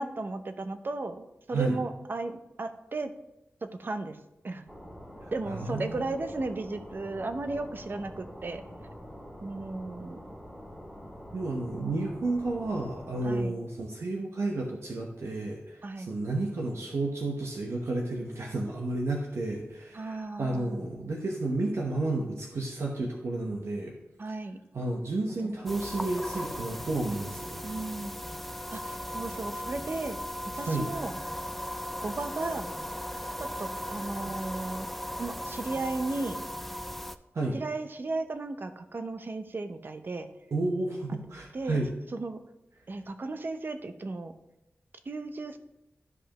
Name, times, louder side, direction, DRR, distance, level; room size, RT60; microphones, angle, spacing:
voice 1, 0.0-3.1 3.6-4.2 4.4-4.6 5.3-8.6 9.4-10.2 13.2-13.6 15.8-16.2 19.9-20.9 24.2-24.6 25.4-25.5 27.6-28.2 28.7-30.2 30.5-31.2 32.0-32.7 33.4-34.9 35.2-36.4 37.5-40.3 41.5-41.8 42.1-42.4 42.9-44.3 45.1-45.6, right 3 dB, 45° right, 8 dB, 0.7 m, -35 dB
sound 1, 4.7-13.5, equal, 15° right, 2.3 m, -45 dB
voice 2, 5.5-6.2 11.3-23.9 24.7-27.6 30.6-30.9 37.3-37.6 40.5-41.9, right 2 dB, 75° right, 0 dB, 1.0 m, -31 dB
sound 2, 25.7-37.2, equal, 5° left, 0.4 m, -37 dB
12.5 x 5.3 x 3.0 m, 0.92 s
wide cardioid pair, 100°, 5 cm